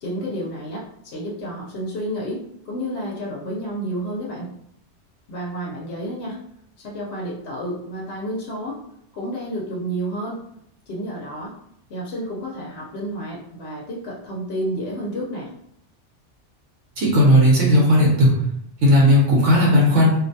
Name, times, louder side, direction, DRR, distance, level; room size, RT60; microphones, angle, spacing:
voice 1, 0.0-2.4 2.7-4.5 5.3-6.4 6.8-8.8 9.1-10.4 10.9-11.5 11.9-15.5, right 1 dB, 65° left, -4 dB, 0.8 m, -30 dB
voice 2, 17.0-18.3 18.8-20.1, equal, 80° right, -3 dB, 1.1 m, -15 dB
2.5 x 2.1 x 2.6 m, 0.74 s
omnidirectional pair, 1.2 m